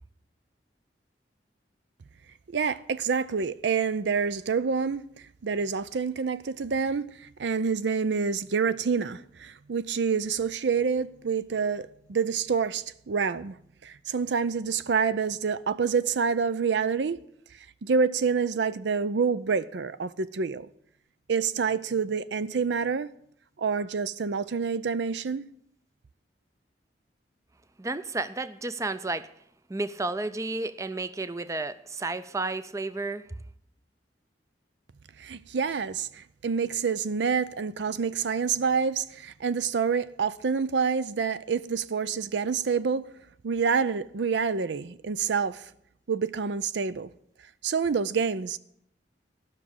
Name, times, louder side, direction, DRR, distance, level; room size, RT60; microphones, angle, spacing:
voice 1, 2.5-5.0 5.4-13.6 13.8-17.2 17.8-20.7 21.3-23.1 23.6-25.5 35.2-43.0 43.4-45.7 46.1-47.1 47.6-48.6, right 5 dB, 80° right, 0.5 m, -27 dB
voice 2, 27.8-29.3 29.7-33.3, right 3 dB, 20° right, 0.4 m, -32 dB
13.0 x 6.1 x 8.6 m
head